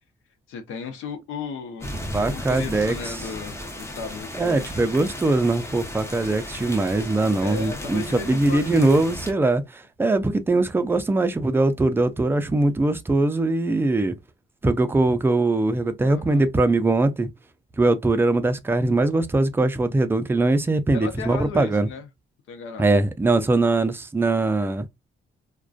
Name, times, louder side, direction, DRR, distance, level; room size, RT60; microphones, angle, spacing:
voice 1, 0.5-1.9 2.2-5.0 7.4-9.2 16.0-16.4 20.9-22.1 22.5-22.9, left 5 dB, 85° left, 0.7 m, -35 dB
sound 1, 1.8-9.3, left 1 dB, 15° left, 0.8 m, -35 dB
voice 2, 2.1-2.9 4.4-14.2 14.6-17.3 17.8-21.9 22.8-24.9, right 2 dB, 10° right, 0.4 m, -21 dB
2.4 x 2.2 x 2.4 m
cardioid pair, 90°, 20 cm